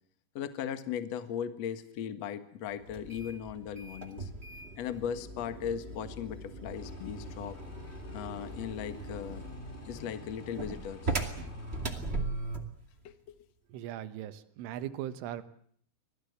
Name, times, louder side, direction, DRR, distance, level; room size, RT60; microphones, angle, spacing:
voice 1, 0.3-4.3 4.8-7.6 8.1-9.4 9.8-11.2 13.0-13.1, left 8 dB, 85° left, 10 dB, 1.4 m, -37 dB
sound 1, 2.9-12.8, right 2 dB, 65° right, 0.6 m, -39 dB
sound 2, 6.7-11.9, left 1 dB, 25° left, 1.6 m, -48 dB
voice 2, 13.7-15.4, right 11 dB, 80° right, 11 dB, 3.7 m, -39 dB
25.5 x 19.0 x 8.2 m, 0.63 s
omnidirectional pair, 5.7 m